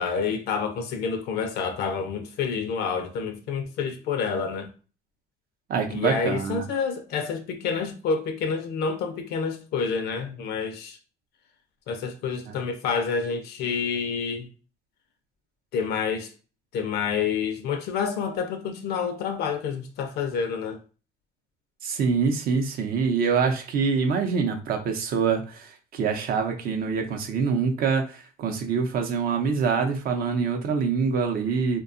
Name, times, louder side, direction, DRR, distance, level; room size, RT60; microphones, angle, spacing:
voice 1, 0.0-4.7 5.9-11.0 11.9-14.5 15.7-16.3 16.7-20.8, left 6 dB, 75° left, 0.4 m, -28 dB
voice 2, 5.7-6.6 12.5-12.6 21.8-31.8, right 5 dB, 65° right, 0.6 m, -25 dB
2.7 x 2.2 x 2.5 m
cardioid pair, 110°, 17 cm